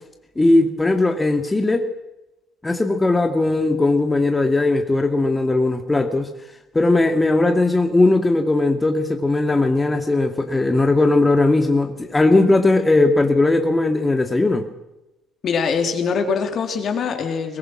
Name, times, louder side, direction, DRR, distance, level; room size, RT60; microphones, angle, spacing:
voice 1, 0.4-1.9 2.6-6.3 6.7-14.6, left 2 dB, 20° left, 5 dB, 2.3 m, -18 dB
voice 2, 15.4-17.6, left 5 dB, 55° left, 5 dB, 3.3 m, -23 dB
23.0 x 20.0 x 6.2 m, 0.95 s
hypercardioid pair, 50°, 0 cm